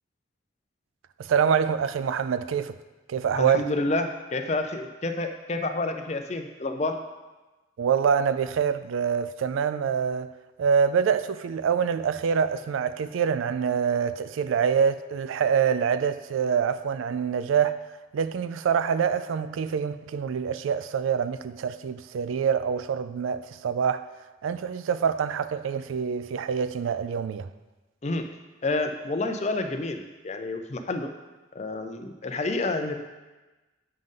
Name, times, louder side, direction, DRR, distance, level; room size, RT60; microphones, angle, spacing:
voice 1, 1.2-2.8 3.1-3.7 7.8-10.3 10.6-17.8 18.1-24.1 24.4-27.5, right 7 dB, 85° right, 0.3 m, -25 dB
voice 2, 3.3-6.9 28.0-28.3 28.6-31.1 31.5-32.9, left 2 dB, 35° left, 0.5 m, -29 dB
7.7 x 5.2 x 3.7 m
head